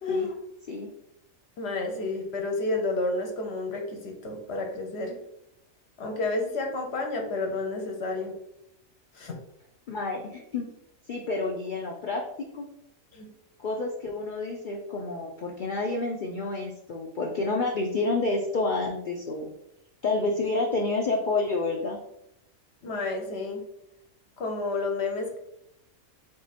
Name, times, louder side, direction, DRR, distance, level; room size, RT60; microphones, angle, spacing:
voice 1, 0.0-0.3 1.6-5.2 6.0-8.3 9.1-9.4 13.1-13.3 22.8-23.6 24.4-25.4, left 2 dB, 55° left, 2 dB, 0.9 m, -30 dB
voice 2, 9.9-10.6 11.1-12.2 12.5-12.7 13.6-19.5 20.0-22.0, left 3 dB, 80° left, 1 dB, 0.4 m, -29 dB
3.6 x 2.8 x 4.0 m, 0.80 s
omnidirectional pair, 1.4 m